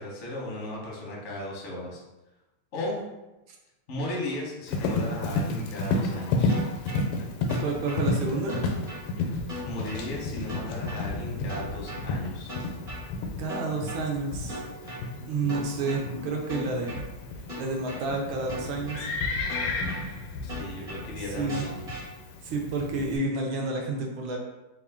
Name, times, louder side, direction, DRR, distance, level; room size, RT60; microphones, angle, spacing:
voice 1, 0.0-2.0 2.7-3.0 3.9-6.6 9.7-12.5 20.4-21.8, left 1 dB, 60° left, -3 dB, 0.8 m, -35 dB
Livestock farm animals working animals, 4.7-23.2, left 3 dB, 90° left, 1.5 m, -32 dB
sound 1, 6.5-7.0 7.5-8.0 8.5-9.0 9.5-10.0 10.5-11.0 11.5-12.0 12.5-13.0 13.5-14.0 14.5-15.0 15.5-16.0 16.5-17.0 17.5-18.0 18.5-19.0 19.5-20.0 20.5-21.0 21.5-22.0, equal, 30° right, 0.8 m, -38 dB
voice 2, 7.6-8.6 13.4-14.7 15.3-17.0 17.6-19.1 21.1-21.6 22.4-24.4, right 3 dB, 75° right, 0 dB, 1.4 m, -30 dB
3.6 x 2.4 x 3.5 m, 1.0 s
omnidirectional pair, 2.4 m